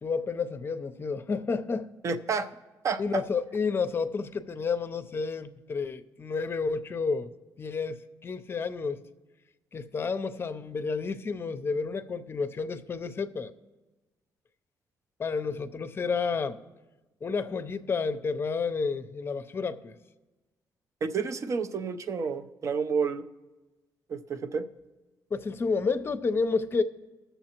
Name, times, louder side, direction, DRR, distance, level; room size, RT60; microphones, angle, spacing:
voice 1, 0.0-1.9 3.0-7.3 7.6-9.0 9.7-13.5 15.2-16.6 17.2-19.9 25.3-26.8, left 4 dB, 35° left, 0.6 m, -30 dB
voice 2, 2.0-2.5 2.8-3.2 21.0-23.2 24.1-24.7, right 5 dB, 45° right, 0.6 m, -30 dB
20.0 x 6.9 x 2.9 m
cardioid pair, 95°, 7 cm